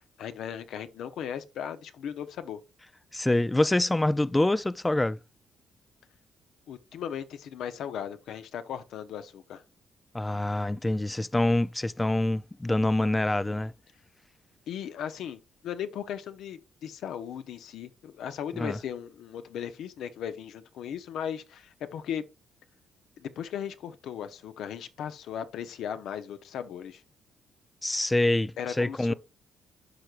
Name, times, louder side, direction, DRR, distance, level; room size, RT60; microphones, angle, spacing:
voice 1, 0.2-2.6 6.7-9.6 14.7-22.2 23.2-27.0 28.6-29.1, left 9 dB, 75° left, 0.8 m, -37 dB
voice 2, 3.1-5.2 10.1-13.7 18.6-18.8 27.8-29.1, left 1 dB, 15° left, 0.3 m, -26 dB
11.5 x 4.6 x 2.4 m
cardioid pair, 90°, 0 cm